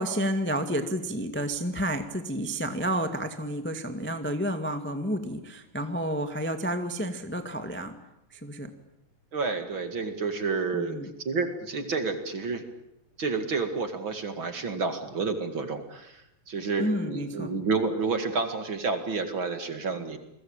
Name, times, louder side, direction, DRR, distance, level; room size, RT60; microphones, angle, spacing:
voice 1, 0.0-7.9 8.3-8.7 10.7-11.1 16.8-17.5, equal, 5° left, 6 dB, 1.0 m, -30 dB
voice 2, 9.3-11.0 11.2-12.7 13.2-20.2, right 4 dB, 40° right, 7 dB, 2.5 m, -30 dB
29.0 x 21.5 x 8.8 m, 0.84 s
omnidirectional pair, 3.8 m